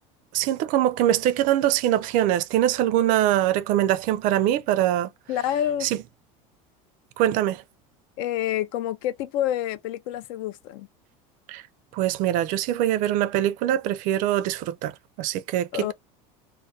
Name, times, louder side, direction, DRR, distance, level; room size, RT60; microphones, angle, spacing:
voice 1, 0.3-5.1 5.8-5.9 7.2-7.6 11.5-11.6 11.9-14.9 15.2-15.9, right 12 dB, 55° right, 0.4 m, -23 dB
voice 2, 5.3-5.9 8.2-10.9 15.7-15.9, left 11 dB, 70° left, 0.4 m, -28 dB
2.3 x 2.1 x 2.6 m
supercardioid pair, 135°, 17 cm